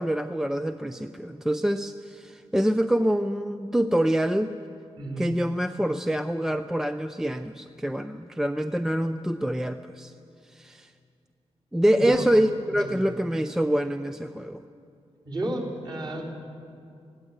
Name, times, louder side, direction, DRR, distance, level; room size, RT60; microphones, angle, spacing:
voice 1, 0.0-4.5 5.2-10.1 10.5-10.9 11.7-14.6, equal, 5° right, 9 dB, 0.4 m, -26 dB
voice 2, 5.0-5.3 11.9-12.3 12.8-12.9 15.3-16.3, right 1 dB, 40° right, -3 dB, 3.9 m, -31 dB
20.5 x 17.0 x 8.1 m, 2.4 s
wide cardioid pair, 165°, 11 cm